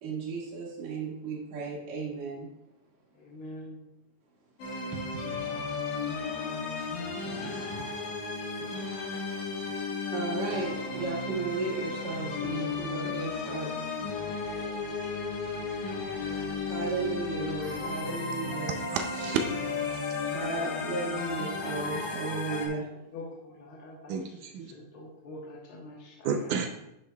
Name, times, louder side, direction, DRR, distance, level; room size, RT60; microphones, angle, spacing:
voice 1, 0.0-2.5 6.8-8.1 8.7-8.8 10.1-13.7 16.5-18.8 20.2-22.9, right 4 dB, 65° right, -4 dB, 3.0 m, -35 dB
voice 2, 3.1-3.8 9.4-9.5 12.0-12.6 16.4-16.5 20.5-22.0 22.3-22.4 22.6-26.6, left 2 dB, 60° left, -2 dB, 1.5 m, -46 dB
sound 1, 4.6-22.7, left 4 dB, 80° left, 2.8 m, -34 dB
voice 3, 18.7-19.4 24.1-24.7 26.2-26.7, right 7 dB, 85° right, 5 dB, 2.1 m, -31 dB
10.0 x 7.4 x 2.3 m, 0.85 s
omnidirectional pair, 3.5 m